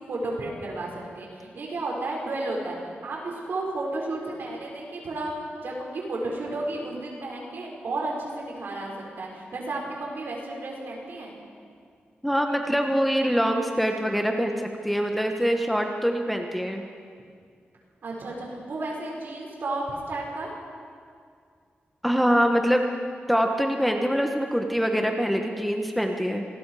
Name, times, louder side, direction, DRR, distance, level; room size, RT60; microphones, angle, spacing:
voice 1, 0.1-0.9 1.2-2.7 3.0-11.3 18.0-20.5, right 2 dB, 65° right, -2 dB, 5.8 m, -32 dB
voice 2, 12.2-16.8 22.0-22.8 23.3-26.4, equal, ahead, 3 dB, 1.2 m, -24 dB
27.0 x 19.5 x 5.0 m, 2.2 s
wide cardioid pair, 135°, 4 cm